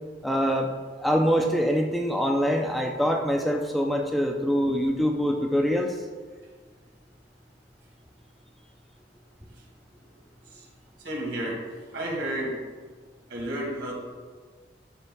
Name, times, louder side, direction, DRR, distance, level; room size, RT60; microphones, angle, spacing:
voice 1, 0.2-0.7 1.0-6.0, equal, ahead, 1 dB, 0.4 m, -24 dB
voice 2, 11.0-11.6 11.9-12.6 13.3-14.0, right 1 dB, 75° right, -1 dB, 2.0 m, -31 dB
12.0 x 6.8 x 2.2 m, 1.5 s
head